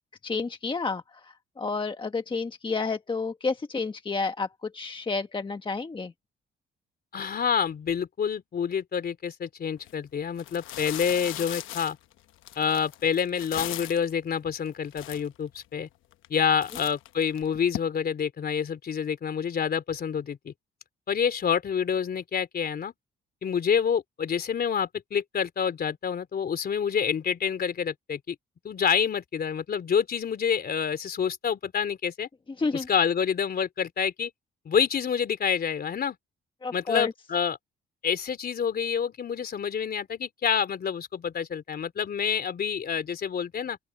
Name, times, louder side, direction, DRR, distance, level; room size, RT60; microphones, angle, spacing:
voice 1, 0.2-6.1 32.6-32.9 36.6-37.1, left 4 dB, 25° left, 1.3 m, -30 dB
voice 2, 7.1-12.0 12.6-15.9 16.3-20.5 21.1-22.9 23.4-28.3 28.6-32.3 32.7-34.3 34.6-36.2 36.7-37.6 38.0-43.8, left 7 dB, 50° left, 3.3 m, -27 dB
sound 1, 9.8-9.9 10.4-14.1 14.7-14.8 14.9-15.6 16.1-16.4 16.6-17.8, left 14 dB, 85° left, 1.0 m, -38 dB
open air
cardioid pair, 90°, 20 cm